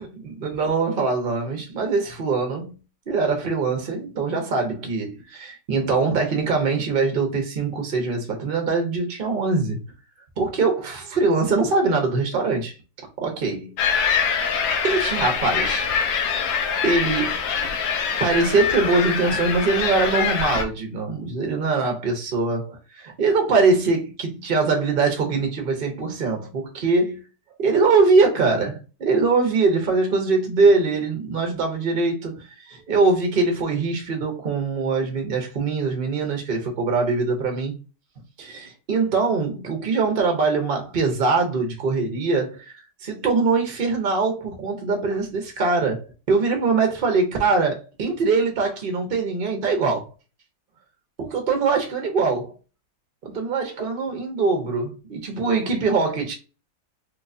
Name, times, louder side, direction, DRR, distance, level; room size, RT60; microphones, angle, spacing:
voice 1, 0.2-2.7 3.1-9.8 10.4-12.7 13.2-13.7 14.8-16.4 16.8-17.4 18.2-27.2 27.6-37.7 38.4-50.1 51.2-52.5 53.2-56.3, right 4 dB, 70° right, 0.5 m, -22 dB
sound 1, 13.8-20.6, left 6 dB, 90° left, 1.4 m, -24 dB
4.4 x 2.4 x 2.6 m
omnidirectional pair, 2.0 m